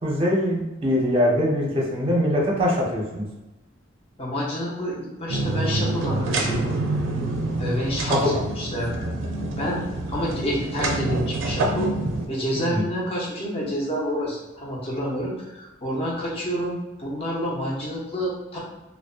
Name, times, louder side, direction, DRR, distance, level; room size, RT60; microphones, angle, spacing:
voice 1, 0.0-3.3 8.1-8.3 12.6-12.9, left 1 dB, 30° right, -3 dB, 0.6 m, -22 dB
voice 2, 4.2-6.7 7.6-9.3 9.6-9.8 10.1-11.9 12.3-18.6, equal, 30° left, -4 dB, 0.6 m, -28 dB
sound 1, 5.3-12.3, right 2 dB, 75° right, 0.4 m, -27 dB
2.6 x 2.2 x 2.3 m, 1.0 s
head